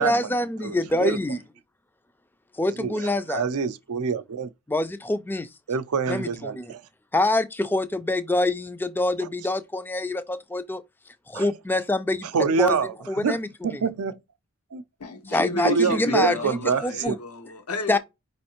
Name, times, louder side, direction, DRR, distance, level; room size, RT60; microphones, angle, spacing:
voice 1, 0.0-1.4 2.6-3.4 4.7-5.5 6.1-6.7 7.1-10.8 11.3-12.8 13.1-13.8 15.3-17.2 17.9-18.0, left 1 dB, 10° left, 0.3 m, -25 dB
voice 2, 0.6-1.2 2.8-4.5 5.7-6.8 9.2-9.3 11.3-11.4 12.3-14.2 14.7-14.8 15.6-17.1, right 5 dB, 80° right, 0.5 m, -26 dB
voice 3, 15.0-18.0, left 3 dB, 90° left, 1.1 m, -32 dB
4.9 x 3.1 x 2.9 m
head